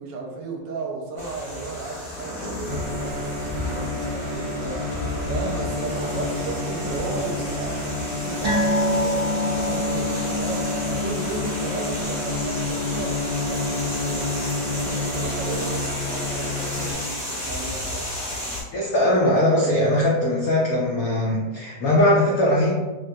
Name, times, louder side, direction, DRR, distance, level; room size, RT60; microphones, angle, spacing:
voice 1, 0.0-18.2, right 3 dB, 75° right, 0 dB, 1.2 m, -35 dB
sound 1, 1.2-18.6, left 1 dB, 25° left, 0.6 m, -33 dB
sound 2, 2.7-16.9, left 2 dB, 35° right, 0.6 m, -29 dB
sound 3, 8.4-15.2 15.5-15.7 16.1-16.2, left 1 dB, 50° right, 1.2 m, -28 dB
voice 2, 18.7-22.7, left 1 dB, 80° left, -4 dB, 0.7 m, -20 dB
3.5 x 2.2 x 2.6 m, 1.2 s
omnidirectional pair, 2.1 m